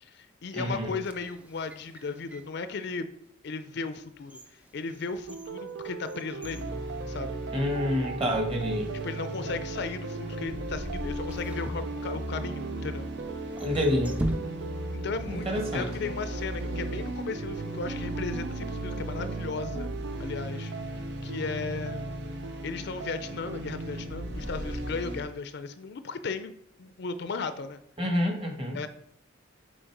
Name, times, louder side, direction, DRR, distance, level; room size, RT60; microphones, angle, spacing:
voice 1, 0.0-3.1 3.4-6.7 7.1-7.4 9.0-13.1 14.9-19.9 20.2-20.7 21.2-22.0 22.6-26.5 26.8-27.8 28.7-28.9, left 4 dB, 55° left, 11 dB, 0.4 m, -36 dB
voice 2, 0.5-0.9 7.5-8.9 13.6-14.2 15.3-15.9 28.0-28.8, equal, 30° right, 3 dB, 1.3 m, -28 dB
sound 1, 0.9-2.6 3.2-3.3 3.9-7.7 7.9-8.0 8.9-9.3 11.2-12.6 13.4-15.0 15.2-15.3, right 1 dB, 5° right, 0.3 m, -40 dB
sound 2, 5.3-23.6, right 5 dB, 75° right, 0.4 m, -40 dB
sound 3, 6.4-25.2, equal, 55° right, 0.8 m, -37 dB
6.3 x 4.3 x 4.6 m, 0.71 s
head